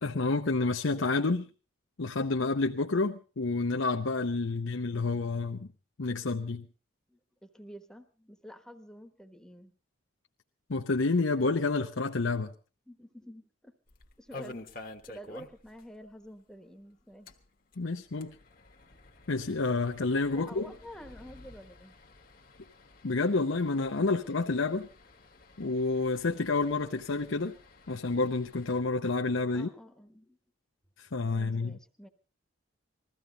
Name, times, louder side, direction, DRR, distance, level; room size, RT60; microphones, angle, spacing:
voice 1, 0.0-1.5 2.0-5.7 6.0-6.7 10.7-12.5 17.8-18.4 19.3-20.7 23.0-24.9 25.6-27.5 27.9-29.7 31.0-31.8, left 3 dB, 65° left, 0.8 m, -29 dB
voice 2, 7.1-9.7 12.9-13.7 14.2-14.6 15.1-17.3 18.9-19.0 20.3-22.0 29.5-30.4 31.2-32.1, equal, 5° left, 1.2 m, -49 dB
sound 1, 13.9-15.8 16.1-16.2 16.5-16.6 17.1-28.8, left 2 dB, 40° left, 1.3 m, -51 dB
21.0 x 15.0 x 3.9 m
head